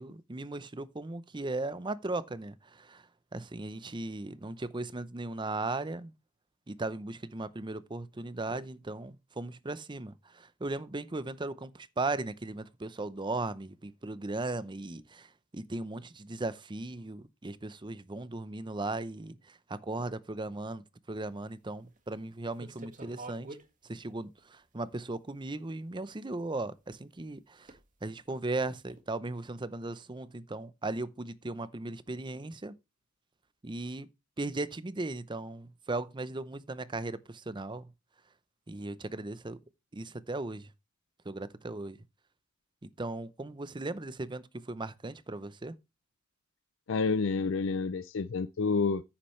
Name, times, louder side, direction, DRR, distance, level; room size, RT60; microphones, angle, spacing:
voice 1, 0.0-6.1 6.7-23.6 23.8-32.7 33.6-34.1 34.4-37.9 38.7-39.6 39.9-40.7 41.2-42.0 42.8-45.8, right 2 dB, 25° right, 0.6 m, -37 dB
sound 1, 21.2-21.3 21.9-22.1 22.6-23.7 24.4-24.5 25.5-25.6 27.6-27.9 28.2-28.4 28.9-29.0, right 2 dB, 40° right, 1.8 m, -47 dB
voice 2, 46.9-49.0, left 4 dB, 65° left, 0.5 m, -29 dB
9.8 x 8.7 x 3.2 m
head